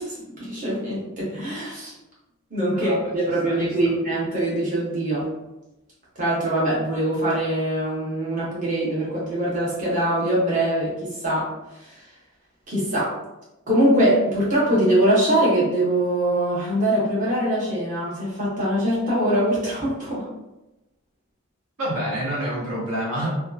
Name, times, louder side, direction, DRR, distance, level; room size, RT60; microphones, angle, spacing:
voice 1, 0.0-1.9 2.5-5.3 6.2-11.5 11.7-12.0 12.7-13.2 13.7-20.3, right 1 dB, 35° right, -7 dB, 0.8 m, -23 dB
voice 2, 2.7-3.1 3.4-3.8 21.8-23.3, right 1 dB, 75° right, -4 dB, 0.7 m, -28 dB
2.7 x 2.3 x 2.3 m, 0.97 s
head